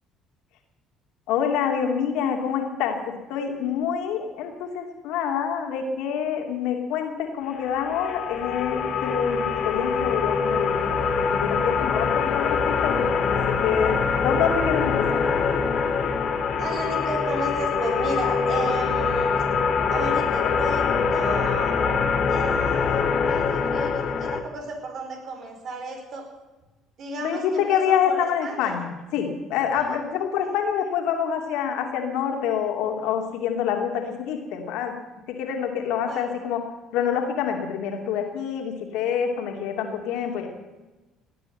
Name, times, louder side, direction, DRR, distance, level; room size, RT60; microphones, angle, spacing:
voice 1, 1.3-3.0 3.3-10.8 11.2-13.0 13.3-14.0 14.2-15.2 27.2-34.9 35.3-36.6 36.9-40.5, left 8 dB, 70° left, 3 dB, 2.9 m, -26 dB
sound 1, 7.6-24.4, left 5 dB, 55° left, 2.1 m, -24 dB
voice 2, 16.6-19.3 19.9-21.8 22.3-26.3 27.0-28.8 29.7-30.0 36.1-36.4, right 2 dB, 55° right, 3 dB, 4.9 m, -33 dB
17.5 x 10.0 x 8.0 m, 1.1 s
hypercardioid pair, 60°, 0 cm